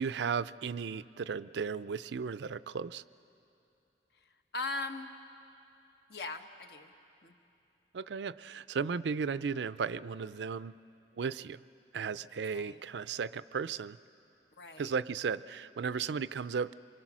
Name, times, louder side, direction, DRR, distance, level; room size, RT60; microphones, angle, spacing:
voice 1, 0.0-3.0 7.9-10.7 11.2-11.6 11.9-14.0 14.8-16.7, right 5 dB, 85° right, 16 dB, 0.4 m, -35 dB
voice 2, 4.5-5.1 6.1-6.9 7.2-7.4 12.4-12.8 14.6-14.9, left 2 dB, 70° left, 6 dB, 1.2 m, -39 dB
27.0 x 23.5 x 6.2 m, 2.7 s
head